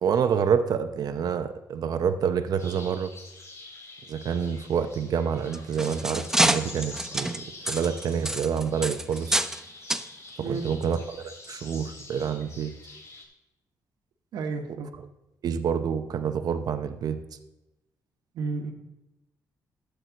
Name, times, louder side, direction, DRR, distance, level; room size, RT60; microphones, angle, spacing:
voice 1, 0.0-3.1 4.1-9.5 10.5-12.7 15.4-17.2, right 7 dB, 65° right, 8 dB, 0.8 m, -27 dB
sound 1, 2.6-13.2, left 2 dB, 40° left, 3.1 m, -46 dB
sound 2, 5.4-9.6 9.9-10.1 10.8-10.9 11.4-11.5, right 1 dB, 5° right, 0.5 m, -27 dB
voice 2, 14.3-14.9 18.3-18.7, right 4 dB, 90° right, 5 dB, 1.4 m, -31 dB
12.5 x 8.1 x 4.0 m, 0.96 s
cardioid pair, 105°, 7 cm